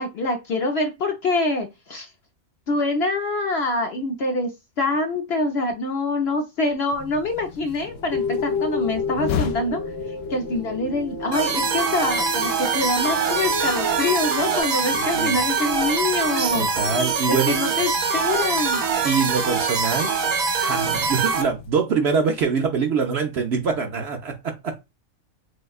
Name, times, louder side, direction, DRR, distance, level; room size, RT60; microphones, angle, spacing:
voice 1, 0.0-2.1 2.7-4.5 4.8-9.8 10.3-16.7 17.3-18.8, left 2 dB, 55° left, 0.9 m, -25 dB
sound 1, 6.9-21.7, left 8 dB, 80° left, 1.0 m, -38 dB
sound 2, 7.9-14.6, left 3 dB, 30° left, 0.6 m, -31 dB
sound 3, 11.3-21.4, right 5 dB, 85° right, 1.3 m, -23 dB
voice 2, 14.9-15.4 16.5-17.6 19.0-20.1 20.6-24.8, right 5 dB, 60° right, 0.8 m, -24 dB
6.2 x 2.2 x 2.3 m
omnidirectional pair, 1.5 m